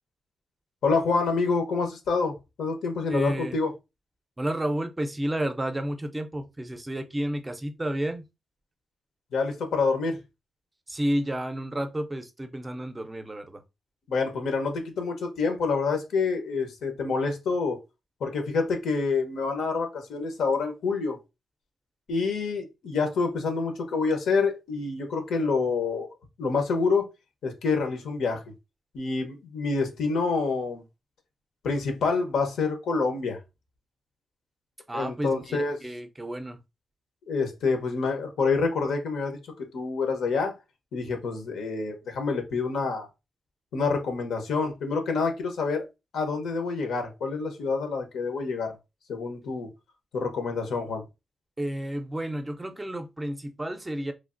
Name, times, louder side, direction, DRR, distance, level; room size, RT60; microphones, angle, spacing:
voice 1, 0.8-3.7 9.3-10.2 14.1-17.8 18.2-21.2 22.1-26.1 26.4-27.1 27.4-28.4 28.9-30.8 31.6-33.4 34.9-35.9 37.3-40.5 40.9-43.1 43.7-45.8 46.1-48.8 49.1-49.7 50.1-51.0, left 4 dB, 90° left, 0.8 m, -27 dB
voice 2, 3.1-3.6 4.4-8.2 10.9-13.6 34.9-36.6 51.6-54.1, right 1 dB, 15° right, 0.4 m, -31 dB
3.2 x 2.4 x 2.4 m
cardioid pair, 100°, 0 cm